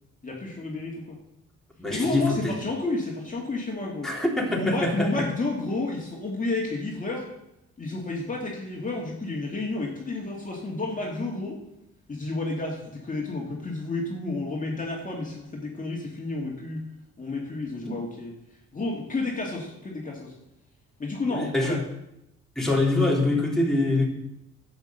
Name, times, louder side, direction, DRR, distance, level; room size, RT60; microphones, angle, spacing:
voice 1, 0.2-1.2 1.9-4.1 4.5-7.3 7.8-11.6 12.1-16.8 17.2-18.3 18.7-20.4 21.0-21.8, left 2 dB, 25° left, -2 dB, 2.5 m, -31 dB
voice 2, 1.8-2.6 4.0-5.3 17.9-18.0 21.3-21.8 22.5-24.1, left 2 dB, ahead, -2 dB, 3.2 m, -25 dB
10.5 x 8.2 x 6.7 m, 0.85 s
cardioid pair, 90°, 30 cm